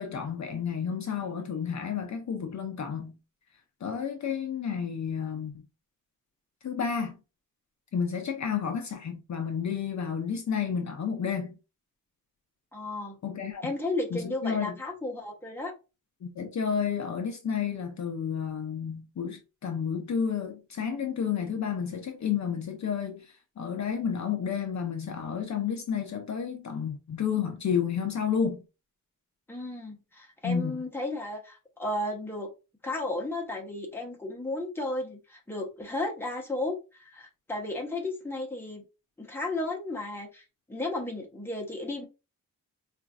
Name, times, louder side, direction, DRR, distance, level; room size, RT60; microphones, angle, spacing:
voice 1, 0.0-3.2 3.8-5.7 6.6-7.2 7.9-11.5 13.2-13.7 14.1-14.8 16.2-28.6 30.4-30.8, left 7 dB, 55° left, 0.5 m, -31 dB
voice 2, 12.7-13.2 13.6-15.7 29.5-32.5 32.8-38.8 39.2-40.4 40.7-42.1, left 2 dB, 5° left, 0.9 m, -34 dB
3.9 x 2.5 x 2.3 m
wide cardioid pair, 165°, 34 cm